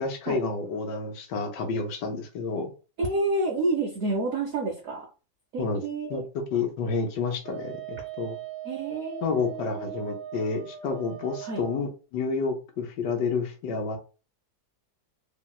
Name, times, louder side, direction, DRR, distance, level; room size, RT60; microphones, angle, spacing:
voice 1, 0.0-2.7 5.6-5.8 6.1-6.2 6.5-8.4 9.2-14.0, left 4 dB, 85° left, 3 dB, 1.3 m, -29 dB
voice 2, 3.0-5.1 5.5-6.3 8.6-10.0 11.4-11.6, right 2 dB, 65° right, 1 dB, 0.9 m, -29 dB
Wind instrument woodwind instrument, 7.4-11.8, right 13 dB, 20° right, 1.1 m, -39 dB
3.1 x 2.7 x 2.2 m, 0.33 s
omnidirectional pair, 1.8 m